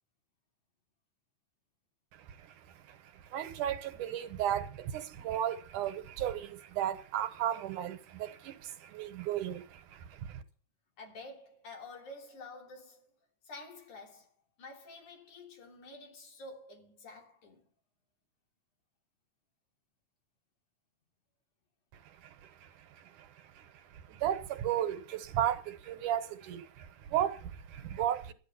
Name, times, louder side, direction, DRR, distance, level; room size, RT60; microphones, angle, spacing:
voice 1, 2.1-10.4 22.0-28.3, right 11 dB, 75° right, 2.6 m, -35 dB
voice 2, 11.0-13.1 13.4-14.3 14.6-17.6, left 2 dB, 65° left, 4.7 m, -49 dB
13.0 x 10.5 x 7.0 m
omnidirectional pair, 3.7 m